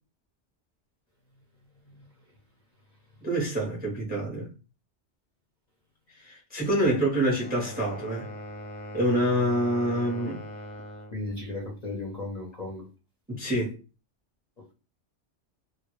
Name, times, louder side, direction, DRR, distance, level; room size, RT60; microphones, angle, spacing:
voice 1, 3.2-4.5 6.2-8.3 8.9-10.4 13.3-13.8, right 1 dB, 10° right, 0.5 m, -26 dB
sound 1, 7.3-11.2, equal, 90° left, 1.0 m, -41 dB
voice 2, 11.1-12.9, left 2 dB, 45° left, 0.6 m, -35 dB
2.1 x 2.0 x 2.9 m
omnidirectional pair, 1.2 m